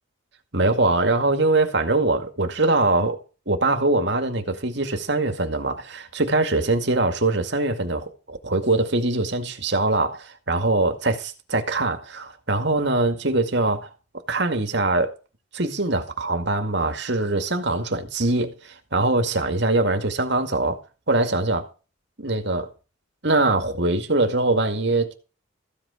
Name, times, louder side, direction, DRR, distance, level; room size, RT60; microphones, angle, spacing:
voice 1, 0.5-3.2 3.5-13.9 14.3-15.2 15.5-20.8 21.1-21.7 22.2-22.7 23.2-25.1, right 2 dB, 60° right, 2.1 m, -22 dB
14.5 x 8.4 x 5.1 m
head